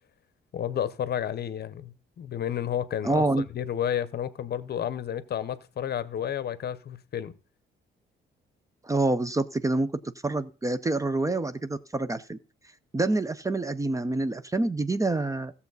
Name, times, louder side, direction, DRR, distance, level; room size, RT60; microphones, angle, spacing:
voice 1, 0.5-3.3 3.5-7.3, left 9 dB, 55° left, 0.7 m, -31 dB
voice 2, 3.0-3.4 8.8-9.9 10.2-12.4 12.9-15.5, right 2 dB, 15° right, 0.5 m, -27 dB
14.5 x 7.1 x 4.0 m
cardioid pair, 90°, 20 cm